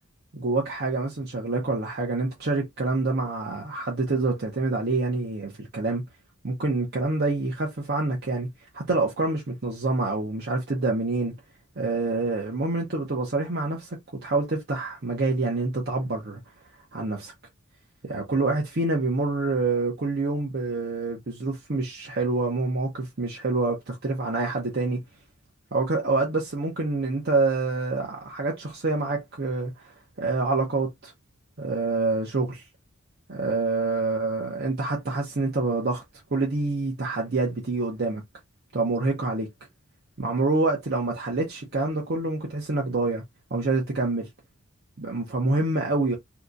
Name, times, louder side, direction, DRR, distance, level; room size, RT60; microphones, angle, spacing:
voice 1, 0.3-6.0 6.4-8.5 8.7-11.3 11.8-14.0 14.2-16.4 16.9-17.3 18.0-25.0 25.7-31.1 31.6-32.6 33.3-36.0 36.3-38.2 38.7-39.5 40.2-43.2 43.5-44.3 45.0-46.2, right 3 dB, 50° right, 0.8 m, -26 dB
2.8 x 2.4 x 3.8 m
head